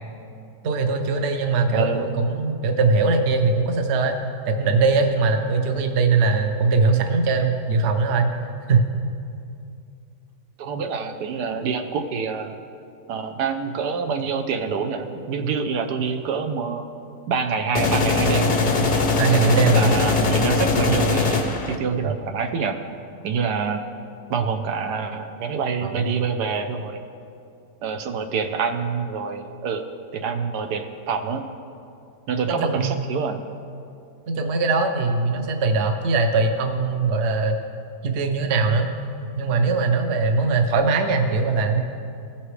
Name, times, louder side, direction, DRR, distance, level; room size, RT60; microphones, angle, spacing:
voice 1, 0.6-4.2 4.5-8.3 8.7-8.9 19.2-19.9 22.1-22.2 25.8-26.1 32.5-32.9 34.3-37.6 38.0-38.9 39.4-41.8, right 4 dB, 55° right, 5 dB, 0.8 m, -21 dB
voice 2, 1.7-2.0 10.6-12.6 13.1-16.8 17.3-18.6 19.4-22.8 23.2-23.8 24.3-27.0 27.8-29.8 30.1-31.4 32.3-33.4, right 5 dB, 75° right, 5 dB, 1.2 m, -26 dB
sound 1, 17.7-21.8, left 3 dB, 50° left, 0.5 m, -21 dB
17.5 x 5.9 x 3.2 m, 2.5 s
omnidirectional pair, 1.8 m